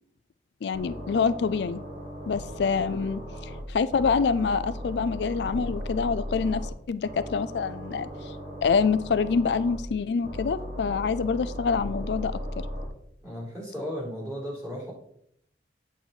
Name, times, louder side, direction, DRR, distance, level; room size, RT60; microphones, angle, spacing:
voice 1, 0.6-1.8 2.3-3.2 3.7-8.3 8.6-12.4, left 5 dB, 75° left, 14 dB, 0.4 m, -26 dB
sound 1, 0.7-3.6 3.9-6.7 7.0-9.8 10.2-12.9, equal, 40° right, 1.8 m, -37 dB
voice 2, 13.2-14.9, equal, 20° right, -5 dB, 4.0 m, -35 dB
8.4 x 6.0 x 4.4 m, 0.69 s
head